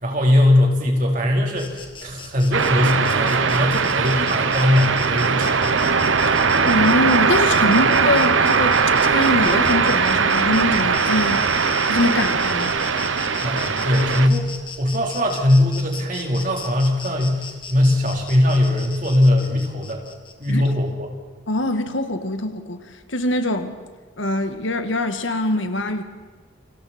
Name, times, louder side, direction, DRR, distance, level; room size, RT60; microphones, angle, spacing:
voice 1, 0.0-1.7 2.0-5.7 13.4-20.0 20.4-21.1, left 1 dB, 45° right, 3.8 m, -20 dB
Insect, 1.6-20.7, left 5 dB, 25° left, 1.9 m, -38 dB
sound 1, 2.5-14.3, right 5 dB, 85° right, 1.1 m, -20 dB
voice 2, 6.3-11.4 11.9-12.8 20.5-20.6 21.5-22.8 23.1-23.8 24.2-26.0, left 1 dB, 80° left, 1.8 m, -23 dB
29.0 x 26.0 x 4.4 m
head